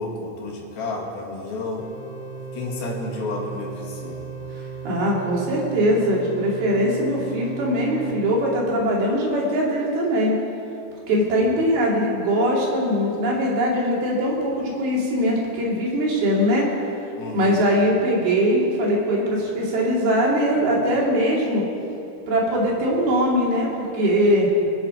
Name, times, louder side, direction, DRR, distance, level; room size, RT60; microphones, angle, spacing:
voice 1, 0.0-1.9 2.5-4.3 17.1-17.6, left 3 dB, 70° left, -1 dB, 3.9 m, -31 dB
sound 1, 1.8-8.1, right 6 dB, 55° left, 1.1 m, -36 dB
voice 2, 4.5-10.3 11.1-16.7 17.3-21.6 22.3-24.5, equal, 75° right, -4 dB, 4.8 m, -21 dB
26.0 x 9.9 x 5.2 m, 2.8 s
omnidirectional pair, 4.4 m